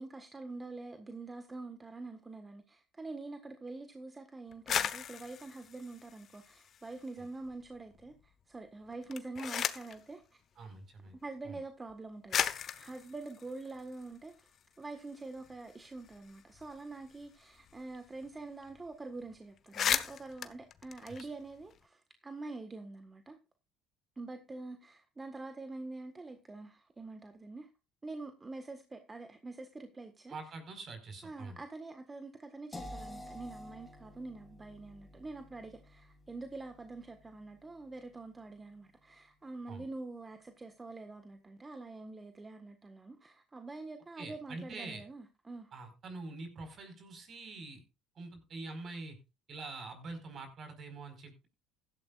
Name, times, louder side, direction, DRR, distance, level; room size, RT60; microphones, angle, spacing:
voice 1, 0.0-10.2 11.2-14.5 14.8-23.4 24.2-27.7 28.0-30.3 31.2-45.7, right 3 dB, 20° right, 1.6 m, -45 dB
sound 1, 4.5-7.1 7.5-8.1 8.9-10.0 11.1-11.2 11.9-12.0 12.3-14.6 15.0-15.1 15.3-18.0 18.2-18.3 18.6-18.9 19.2-19.3 19.6-21.8, left 9 dB, 50° left, 1.1 m, -37 dB
voice 2, 10.6-11.1 11.4-11.6 21.2-21.3 30.3-31.6 39.7-39.8 44.2-45.0 45.7-47.8 48.1-49.2 49.5-51.5, right 3 dB, 45° right, 5.0 m, -45 dB
sound 2, 32.7-38.6, left 1 dB, 20° left, 6.9 m, -51 dB
15.5 x 12.0 x 2.5 m
hypercardioid pair, 70°, 0 cm